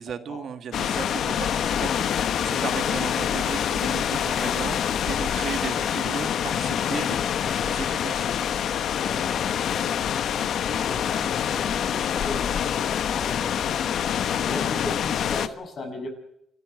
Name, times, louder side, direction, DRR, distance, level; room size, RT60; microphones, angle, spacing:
voice 1, 0.0-8.3, right 7 dB, 60° right, 10 dB, 1.7 m, -36 dB
sound 1, 0.7-15.5, left 9 dB, 65° left, 1.1 m, -26 dB
voice 2, 8.9-9.5 9.8-13.5 14.4-16.1, left 2 dB, 50° left, 6 dB, 6.9 m, -37 dB
28.0 x 13.5 x 7.8 m, 0.77 s
cardioid pair, 125°, 0 cm